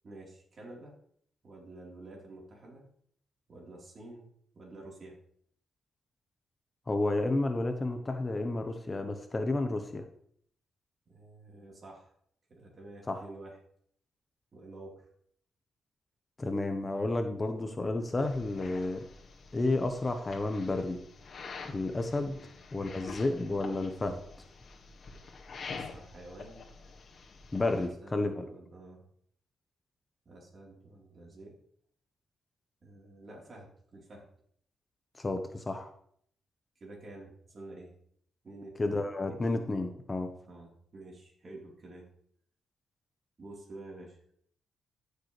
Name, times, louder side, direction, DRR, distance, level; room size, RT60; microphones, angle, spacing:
voice 1, 0.0-0.9 1.4-2.8 3.5-4.3 4.5-5.2 11.1-12.1 12.5-13.6 14.5-15.1 22.2-22.5 25.7-26.7 27.8-29.0 30.3-31.6 32.8-34.3 36.8-37.9 38.4-39.0 40.5-42.1 43.4-44.3, right 2 dB, 45° right, -2 dB, 3.9 m, -49 dB
voice 2, 6.9-10.0 13.1-13.2 16.4-19.0 19.5-21.0 21.6-22.4 22.7-24.2 27.5-28.5 35.2-35.9 38.8-40.3, left 2 dB, 25° left, 6 dB, 1.0 m, -31 dB
sound 1, 18.2-27.9, left 4 dB, 55° left, 1.8 m, -47 dB
14.0 x 6.9 x 3.3 m, 0.65 s
cardioid pair, 90°, 0 cm